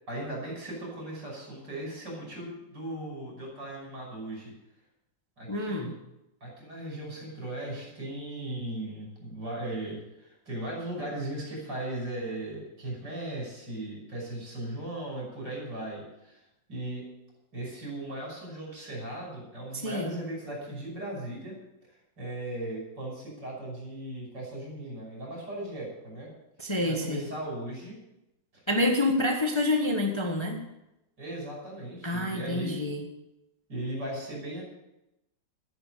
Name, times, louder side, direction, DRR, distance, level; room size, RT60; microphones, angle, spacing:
voice 1, 0.1-4.5 5.4-5.9 6.4-16.4 16.7-17.0 17.5-21.5 22.2-26.3 26.8-28.0 28.5-28.6 31.2-32.8 33.7-34.6, right 1 dB, 70° right, -2 dB, 6.7 m, -37 dB
voice 2, 5.5-5.9 19.8-20.2 26.6-27.3 28.7-30.6 32.0-33.0, left 2 dB, 15° left, 2 dB, 1.4 m, -27 dB
13.0 x 11.0 x 6.7 m, 0.90 s
omnidirectional pair, 2.0 m